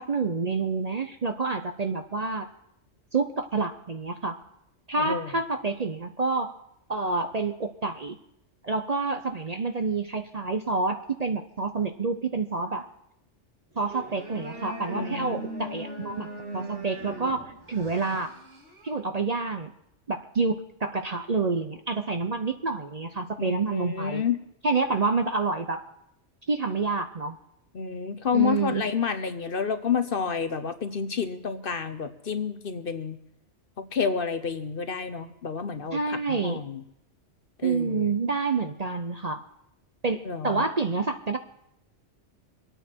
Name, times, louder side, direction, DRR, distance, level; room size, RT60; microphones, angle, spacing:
voice 1, 0.1-2.5 3.1-4.4 4.9-6.5 6.9-8.2 8.6-12.9 13.8-16.3 16.5-18.3 18.8-19.7 20.1-24.2 24.6-25.8 26.5-27.4 28.3-28.8 35.9-36.6 37.6-39.4 40.0-41.4, right 4 dB, 40° right, 6 dB, 0.7 m, -28 dB
voice 2, 5.0-5.3 14.9-15.4 23.4-24.4 27.7-33.2 33.8-36.8 37.6-38.2 40.2-40.7, left 6 dB, 50° left, 9 dB, 1.0 m, -29 dB
sound 1, 13.7-19.0, right 1 dB, 70° right, 2.9 m, -39 dB
24.5 x 9.1 x 4.4 m, 0.79 s
omnidirectional pair, 1.2 m